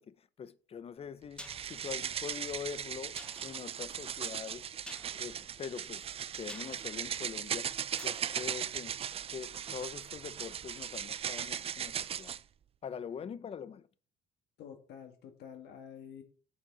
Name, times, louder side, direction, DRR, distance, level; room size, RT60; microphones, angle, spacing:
voice 1, 0.0-4.7 5.1-6.0 6.3-9.0 9.3-12.4 12.8-13.9, left 7 dB, 35° left, 0.6 m, -43 dB
sound 1, 1.0-9.8 10.1-10.2, equal, 5° left, 1.8 m, -54 dB
sound 2, 1.4-12.4, right 9 dB, 35° right, 0.4 m, -38 dB
voice 2, 14.6-16.2, left 8 dB, 75° left, 2.1 m, -49 dB
8.5 x 4.4 x 5.6 m
cardioid pair, 110°, 17 cm